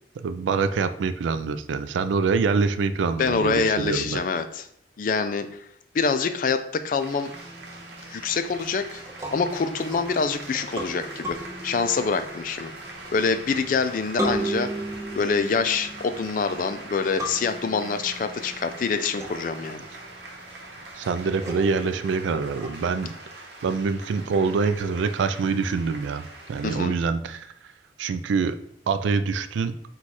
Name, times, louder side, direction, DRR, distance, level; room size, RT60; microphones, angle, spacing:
voice 1, 0.2-4.2 20.9-27.5 28.0-28.6 28.9-29.8, right 5 dB, 85° right, 11 dB, 0.3 m, -25 dB
voice 2, 3.2-4.7 5.0-5.5 5.9-7.3 8.0-9.0 9.3-11.4 11.6-12.7 13.1-14.7 15.1-19.8 26.6-27.0, left 5 dB, 45° left, 9 dB, 0.3 m, -25 dB
sound 1, 7.0-26.8, right 2 dB, 65° right, 0.8 m, -42 dB
sound 2, 7.3-22.9, right 1 dB, 15° right, 0.6 m, -37 dB
4.7 x 2.3 x 4.1 m, 0.68 s
head